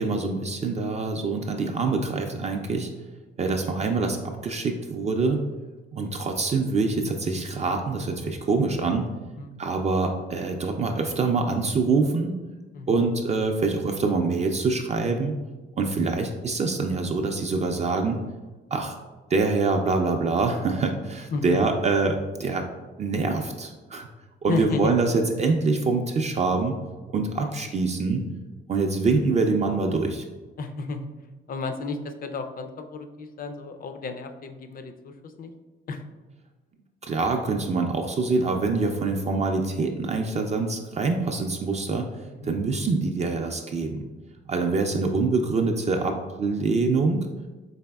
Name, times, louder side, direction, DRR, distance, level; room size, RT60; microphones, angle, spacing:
voice 1, 0.0-2.9 3.4-5.4 5.9-9.1 9.6-12.4 12.9-15.4 15.8-18.2 18.7-19.0 19.3-22.7 23.0-24.1 24.4-26.8 27.1-28.2 28.7-30.2 37.0-42.1 42.4-44.0 44.5-47.2, right 3 dB, 35° right, 3 dB, 0.3 m, -25 dB
voice 2, 12.7-13.1 21.3-21.4 24.5-24.9 27.4-27.6 30.6-31.1 31.5-35.5 35.9-36.0 42.3-42.5 45.1-45.3, left 4 dB, 45° left, 7 dB, 0.4 m, -33 dB
4.0 x 3.4 x 2.2 m, 1.2 s
cardioid pair, 90°, 20 cm